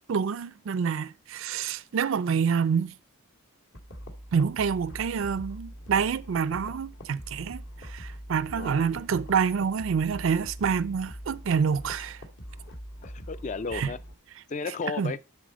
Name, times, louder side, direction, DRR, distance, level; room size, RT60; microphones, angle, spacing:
voice 1, 0.1-2.9 4.3-12.2 13.7-13.9 15.0-15.1, right 6 dB, 60° right, 0.4 m, -27 dB
sound 1, 3.7-14.1, equal, 60° left, 1.8 m, -43 dB
voice 2, 8.5-8.9 13.0-14.0 14.5-15.2, left 4 dB, 35° left, 0.4 m, -34 dB
11.5 x 4.1 x 5.1 m
head